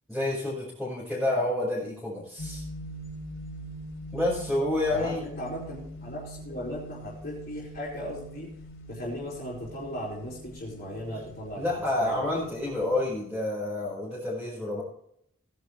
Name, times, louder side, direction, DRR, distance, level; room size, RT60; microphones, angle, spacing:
voice 1, 0.1-2.6 4.1-5.2 11.5-14.8, left 1 dB, ahead, -9 dB, 5.1 m, -29 dB
sound 1, 2.4-13.1, equal, 65° left, 3.9 m, -43 dB
voice 2, 4.9-8.5 8.9-12.3, equal, 40° left, -7 dB, 4.5 m, -37 dB
18.5 x 10.5 x 3.3 m, 0.70 s
head